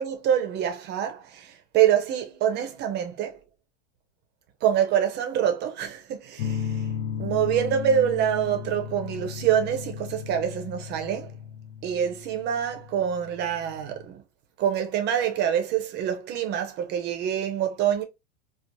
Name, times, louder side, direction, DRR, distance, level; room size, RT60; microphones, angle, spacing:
voice 1, 0.0-3.4 4.6-6.8 7.2-11.3 11.8-14.2 14.6-18.0, right 9 dB, 30° right, 0.6 m, -26 dB
sound 1, 6.4-14.0, left 7 dB, 65° left, 0.8 m, -35 dB
3.0 x 2.0 x 2.5 m
hypercardioid pair, 125°, 37 cm